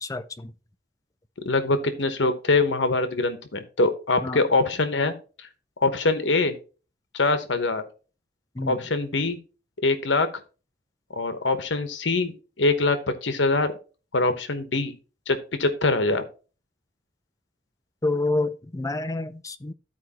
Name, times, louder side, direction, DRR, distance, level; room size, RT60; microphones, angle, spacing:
voice 1, 0.0-0.5 4.2-4.4 8.5-8.8 18.0-19.7, left 2 dB, 20° left, 0.5 m, -28 dB
voice 2, 1.4-5.1 5.8-6.6 7.1-7.8 8.7-9.4 9.8-10.3 11.2-13.7 14.1-14.9 15.3-16.2, left 3 dB, 80° left, 1.1 m, -23 dB
13.5 x 4.6 x 2.9 m
head